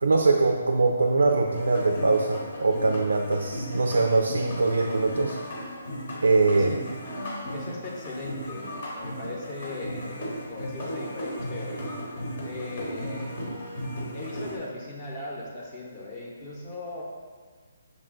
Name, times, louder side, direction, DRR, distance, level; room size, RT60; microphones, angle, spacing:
voice 1, 0.0-5.4 6.2-6.7, right 3 dB, 85° right, 3 dB, 0.3 m, -22 dB
sound 1, 1.5-14.6, equal, 55° left, 1.0 m, -36 dB
voice 2, 6.5-11.9 12.4-13.3 14.1-17.0, left 2 dB, 30° left, -3 dB, 0.8 m, -38 dB
6.0 x 2.2 x 3.7 m, 1.6 s
hypercardioid pair, 145°, 0 cm